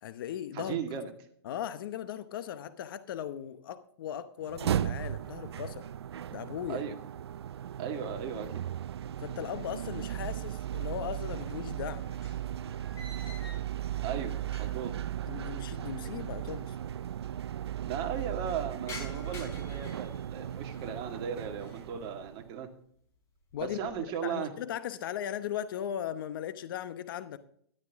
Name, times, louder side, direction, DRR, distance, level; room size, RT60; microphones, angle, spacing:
voice 1, 0.0-0.8 1.4-5.9 6.3-6.8 9.2-12.0 15.3-16.7 23.5-27.4, left 10 dB, 55° left, 0.9 m, -38 dB
voice 2, 0.5-1.1 6.7-6.9 7.8-8.6 14.0-14.3 14.6-14.9 17.8-22.7 23.6-24.5, right 7 dB, 35° right, 2.1 m, -36 dB
sound 1, 4.4-22.6, right 11 dB, 85° right, 0.4 m, -36 dB
sound 2, 9.7-10.6 10.9-15.0 15.2-15.3 16.2-16.3 16.5-16.6 16.9-17.4 17.8-21.0 21.4-21.9 22.4-22.7 23.2-24.1, left 2 dB, 20° left, 5.4 m, -50 dB
13.0 x 11.5 x 3.6 m
hypercardioid pair, 140°, 13 cm